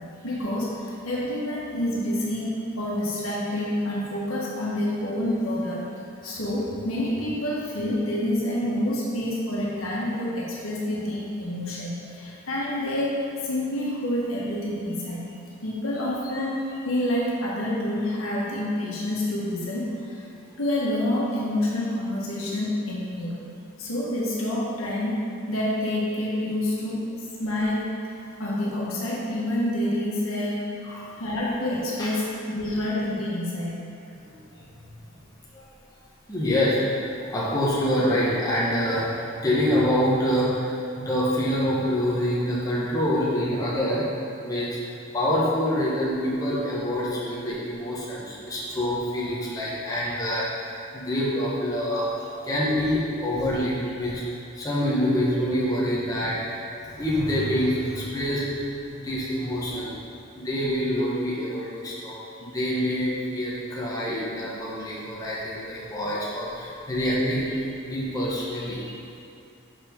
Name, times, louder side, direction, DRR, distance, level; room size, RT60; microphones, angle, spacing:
voice 1, 0.2-5.9 6.2-15.2 15.6-20.3 20.6-23.3 23.8-25.2 25.5-27.0 27.4-27.9 28.4-33.8, left 1 dB, 85° left, -5 dB, 1.6 m, -28 dB
voice 2, 34.2-34.6 35.5-35.6 36.3-44.1 44.4-44.8 45.1-54.2 54.5-58.6 58.9-59.9 60.3-67.6 67.9-68.9, equal, 20° left, -7 dB, 1.3 m, -26 dB
6.1 x 5.5 x 5.2 m, 2.6 s
head